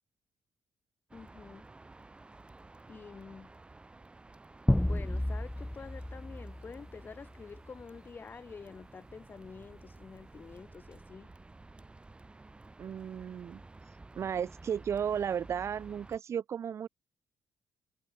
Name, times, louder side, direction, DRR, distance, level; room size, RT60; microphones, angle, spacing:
voice 1, 1.1-1.7 2.9-3.6 4.8-11.3, left 5 dB, 35° left, 2.4 m, -48 dB
sound 1, 1.1-16.2, right 2 dB, 15° right, 5.2 m, -53 dB
sound 2, 4.7-7.5, left 1 dB, 5° left, 0.5 m, -32 dB
voice 2, 12.8-13.6 14.2-16.9, right 8 dB, 50° right, 0.7 m, -34 dB
cardioid pair, 115°, 6 cm